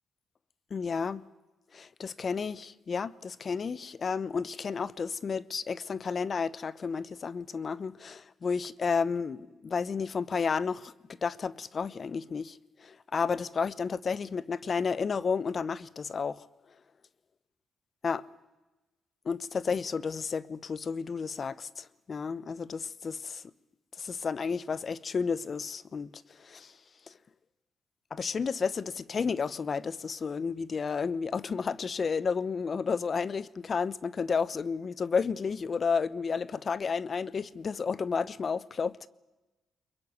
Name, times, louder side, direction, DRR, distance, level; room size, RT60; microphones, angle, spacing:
voice 1, 0.7-1.3 1.7-10.9 11.2-16.4 18.0-18.2 19.3-23.4 24.0-26.1 26.4-26.7 28.1-39.1, left 5 dB, 40° left, 0.9 m, -32 dB
22.5 x 22.0 x 9.6 m
cardioid pair, 90°, 0 cm